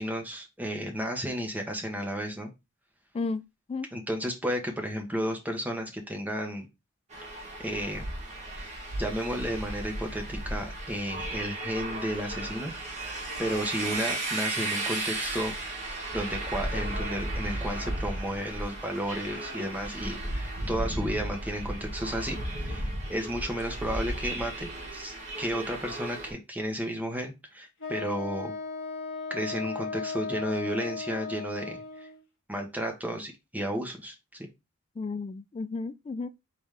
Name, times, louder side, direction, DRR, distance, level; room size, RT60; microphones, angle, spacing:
voice 1, 0.0-2.5 3.9-6.7 7.3-8.1 8.6-8.7 9.0-15.5 16.1-28.5 29.3-32.1 32.5-34.5, equal, 10° right, 1.1 m, -33 dB
voice 2, 3.1-3.9 35.0-36.3, left 3 dB, 30° left, 0.3 m, -33 dB
sound 1, 7.1-26.3, right 1 dB, 35° right, 1.6 m, -35 dB
Wind instrument woodwind instrument, 27.8-32.2, left 4 dB, 65° left, 1.4 m, -36 dB
4.0 x 3.3 x 3.6 m
head